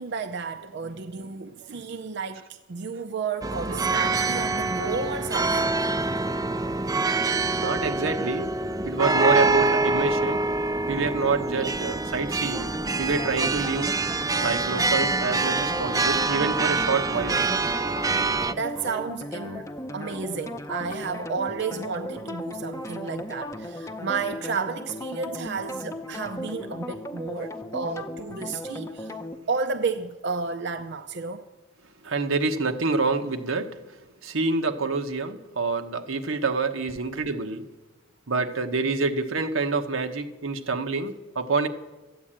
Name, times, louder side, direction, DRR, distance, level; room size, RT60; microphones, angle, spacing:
voice 1, 0.0-5.7 18.5-19.7 19.9-29.1 29.5-31.4, right 5 dB, 60° right, 7 dB, 0.6 m, -32 dB
sound 1, 3.4-18.5, right 3 dB, 20° right, 0.4 m, -25 dB
voice 2, 7.6-8.5 8.8-10.4 10.9-13.9 14.4-17.4 32.0-37.7 38.3-41.7, right 4 dB, 90° right, 6 dB, 1.2 m, -27 dB
sound 2, 12.5-29.4, left 1 dB, 15° left, 0.7 m, -36 dB
13.5 x 9.4 x 8.8 m, 1.1 s
head